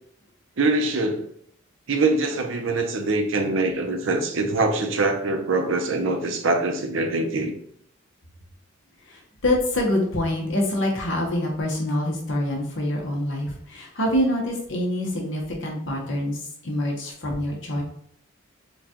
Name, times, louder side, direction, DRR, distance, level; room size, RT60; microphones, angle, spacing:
voice 1, 0.6-1.2 1.9-7.5, right 2 dB, 75° right, 5 dB, 0.6 m, -23 dB
voice 2, 9.1-16.4 16.6-17.8, left 1 dB, 65° left, 0 dB, 1.0 m, -25 dB
6.9 x 2.3 x 2.9 m, 0.66 s
head